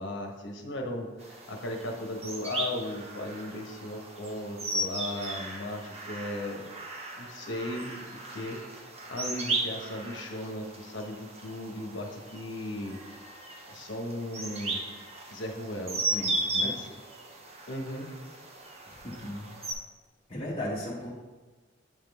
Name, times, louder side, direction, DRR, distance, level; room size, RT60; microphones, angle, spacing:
voice 1, 0.0-6.7 7.2-13.0 13.7-14.8 15.3-16.0 16.6-16.9 17.7-18.1, left 1 dB, 65° left, 2 dB, 1.0 m, -37 dB
sound 1, 1.2-19.7, right 2 dB, 35° right, 0.8 m, -36 dB
voice 2, 16.1-16.8 18.9-19.6 20.3-21.1, left 1 dB, 35° left, -7 dB, 0.9 m, -36 dB
8.8 x 3.7 x 3.4 m, 1.3 s
head